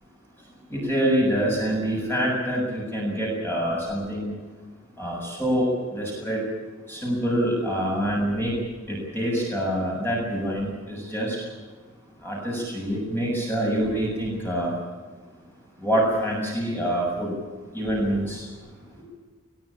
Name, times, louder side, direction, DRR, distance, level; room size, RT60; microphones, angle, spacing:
voice 1, 0.4-4.3 5.0-6.5 6.9-8.6 8.9-11.5 12.2-14.8 15.8-17.4 17.7-18.5 18.9-19.0, equal, 10° left, -3 dB, 7.4 m, -26 dB
21.0 x 20.5 x 8.7 m, 1.4 s
head